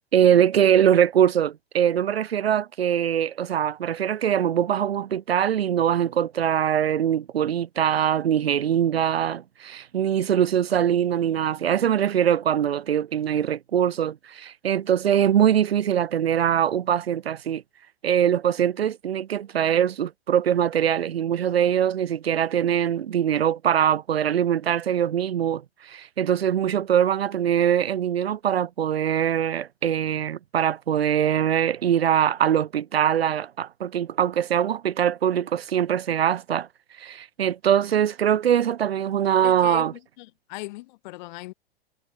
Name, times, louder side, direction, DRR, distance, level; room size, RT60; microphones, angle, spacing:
voice 1, 0.1-17.6 18.0-36.7 37.0-39.9, right 9 dB, 80° right, 0.8 m, -22 dB
voice 2, 39.4-41.5, left 20 dB, 50° left, 3.5 m, -39 dB
hypercardioid pair, 110°, 30 cm